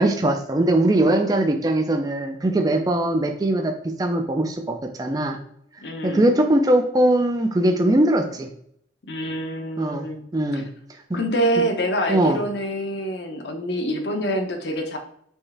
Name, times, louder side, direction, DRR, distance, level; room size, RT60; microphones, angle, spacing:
voice 1, 0.0-3.7 4.0-5.4 6.0-8.5 9.8-10.1 10.3-10.7 11.1-11.2 12.1-12.4, right 1 dB, 20° right, 4 dB, 0.4 m, -20 dB
voice 2, 5.8-6.3 9.0-10.2 10.5-10.7 11.1-15.0, right 1 dB, 60° left, 5 dB, 0.7 m, -26 dB
4.5 x 3.2 x 3.3 m, 0.67 s
head